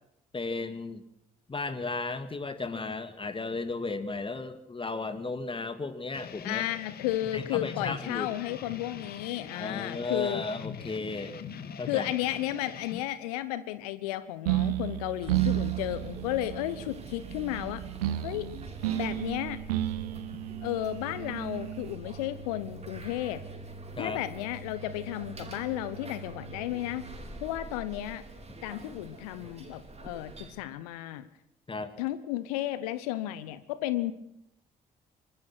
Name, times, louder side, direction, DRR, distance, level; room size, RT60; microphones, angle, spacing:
voice 1, 0.3-1.0 1.5-6.6 7.3-8.3 9.5-11.4 11.8-12.1 24.0-24.2 31.7-31.9, left 3 dB, 25° left, 11 dB, 2.0 m, -34 dB
sound 1, 6.1-13.0, left 7 dB, 55° left, 2.0 m, -42 dB
voice 2, 6.4-10.5 11.9-17.8 18.2-18.5 18.9-19.6 20.6-23.4 24.0-27.0 27.4-28.2 28.6-31.3 32.0-34.1, left 14 dB, 75° left, 14 dB, 0.9 m, -33 dB
sound 2, 14.5-22.0, right 15 dB, 80° right, 1.0 m, -32 dB
sound 3, 15.2-30.5, right 3 dB, 35° right, 4.9 m, -44 dB
24.5 x 20.5 x 6.1 m, 0.78 s
figure-of-eight pair, 45°, 19 cm